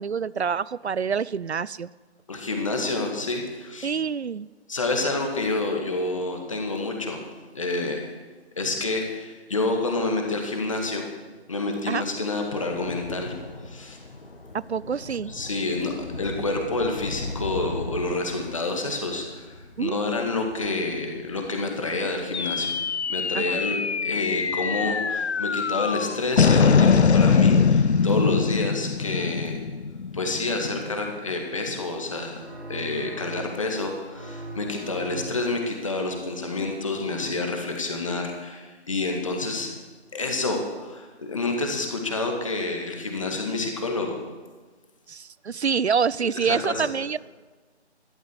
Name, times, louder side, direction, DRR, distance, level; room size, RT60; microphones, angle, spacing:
voice 1, 0.0-1.9 3.8-4.5 11.9-12.0 14.5-15.3 19.8-20.0 23.3-23.6 45.1-47.2, right 6 dB, 70° right, 21 dB, 0.5 m, -26 dB
voice 2, 2.3-3.9 4.7-7.2 7.5-8.1 8.6-11.1 11.5-13.3 13.7-14.0 15.3-22.8 23.1-29.6 30.1-39.7 40.1-44.2 46.2-46.9, left 2 dB, 30° left, 2 dB, 1.9 m, -28 dB
Thunder / Rain, 11.9-28.5 28.8-29.3 29.5-29.7, left 2 dB, 55° left, 1.8 m, -41 dB
sound 1, 22.3-30.9, left 5 dB, 70° left, 0.6 m, -22 dB
sound 2, 32.4-33.8 34.1-35.6, right 2 dB, 25° right, 4.2 m, -39 dB
13.0 x 12.5 x 8.0 m, 1.4 s
figure-of-eight pair, 165°, 34 cm